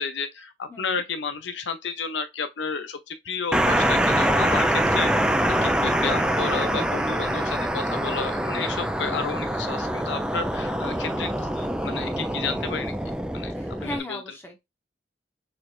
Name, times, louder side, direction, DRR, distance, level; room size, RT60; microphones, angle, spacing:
voice 1, 0.0-12.9 13.3-13.5 13.8-14.2, left 5 dB, 85° left, 0.6 m, -32 dB
voice 2, 0.7-1.0 13.6-14.7, left 1 dB, 15° left, 1.0 m, -38 dB
sound 1, 3.5-14.0, right 1 dB, 5° right, 0.3 m, -24 dB
4.5 x 3.2 x 2.5 m
head